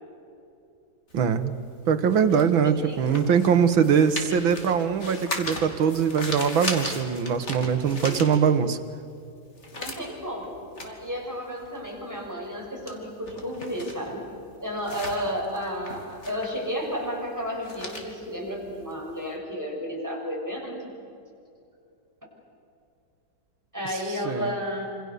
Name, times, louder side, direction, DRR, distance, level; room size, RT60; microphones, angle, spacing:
sound 1, 1.1-8.9 9.2-19.3, left 2 dB, 35° left, 2.9 m, -38 dB
voice 1, 1.1-1.5 1.9-8.8 24.2-24.5, right 7 dB, 75° right, 10 dB, 2.0 m, -22 dB
voice 2, 2.6-3.2 8.0-8.3 9.8-14.3 14.6-20.9 23.7-24.9, equal, 10° right, -2 dB, 6.2 m, -32 dB
27.0 x 26.5 x 6.8 m, 2.6 s
omnidirectional pair, 2.2 m